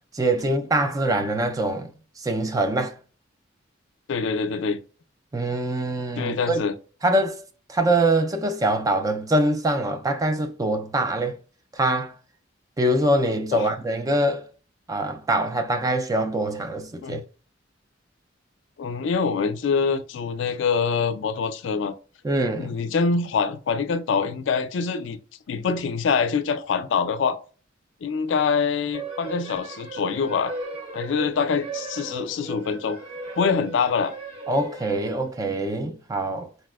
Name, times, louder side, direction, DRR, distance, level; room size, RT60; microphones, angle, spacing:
voice 1, 0.1-1.9 2.2-2.9 5.3-6.6 7.0-7.4 7.7-11.4 11.7-12.1 12.8-14.4 14.9-17.2 22.2-22.7 34.5-36.5, right 1 dB, 20° right, 0.3 m, -24 dB
voice 2, 4.1-4.8 6.2-6.7 13.5-13.7 17.0-17.2 18.8-21.9 22.6-25.2 25.5-27.4 28.0-30.5 30.9-33.0 33.4-34.1, left 5 dB, 70° left, 0.4 m, -25 dB
sound 1, 28.9-35.5, right 2 dB, 35° right, 0.9 m, -37 dB
4.0 x 2.0 x 2.2 m
head